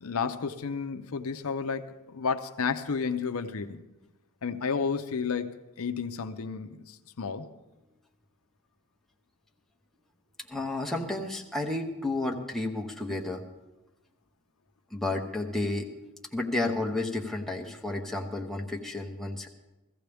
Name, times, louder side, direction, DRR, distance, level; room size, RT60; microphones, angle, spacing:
voice 1, 0.0-3.8 4.4-7.5, left 5 dB, 70° left, 7 dB, 0.7 m, -32 dB
voice 2, 10.5-13.4 14.9-15.9 16.3-19.5, left 2 dB, ahead, 0 dB, 0.9 m, -31 dB
16.5 x 14.5 x 3.5 m, 1.1 s
head